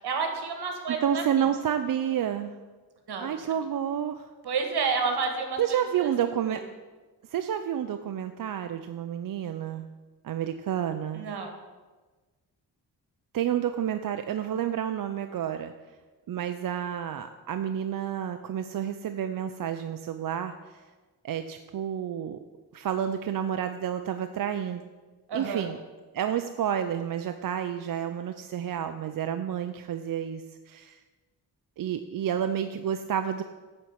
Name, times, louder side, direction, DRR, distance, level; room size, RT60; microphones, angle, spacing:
voice 1, 0.0-1.2 3.1-3.5 4.4-6.1 6.4-6.6 11.1-11.6 25.3-25.7, right 5 dB, 70° right, 4 dB, 1.6 m, -30 dB
voice 2, 0.9-2.5 3.2-4.3 5.6-6.6 7.3-9.9 10.2-11.2 13.3-15.7 16.3-20.8 21.2-22.4 22.7-24.9 25.3-25.8 26.1-31.0 31.8-33.4, right 9 dB, 55° right, 8 dB, 0.5 m, -30 dB
9.2 x 4.4 x 7.3 m, 1.3 s
cardioid pair, 85°, 40 cm